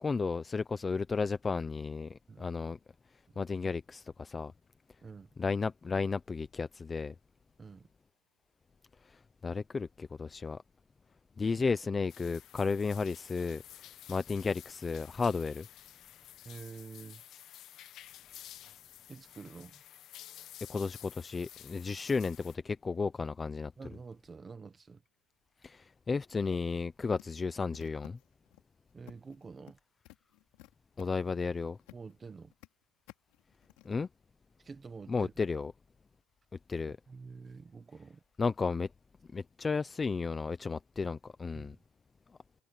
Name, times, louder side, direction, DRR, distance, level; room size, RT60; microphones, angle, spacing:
voice 1, 0.0-2.8 3.4-4.5 5.4-7.1 9.4-10.6 11.4-13.6 14.1-15.7 20.7-23.7 25.6-28.2 31.0-31.8 33.8-34.1 35.1-35.7 36.7-37.0 38.4-38.9 39.3-41.8, left 4 dB, 15° left, 0.5 m, -33 dB
voice 2, 5.0-5.3 7.6-7.9 11.5-11.6 16.4-17.2 19.1-19.8 23.8-25.0 28.9-29.8 31.9-32.5 34.6-35.3 37.1-38.2 41.5-41.8, right 4 dB, 15° right, 1.2 m, -48 dB
sound 1, 12.1-22.6, left 12 dB, 40° left, 1.2 m, -52 dB
sound 2, 27.2-28.6 29.1-29.7 30.0-32.1 32.4-32.7 33.1-33.9, left 20 dB, 70° left, 3.3 m, -55 dB
cardioid pair, 175°, 0 cm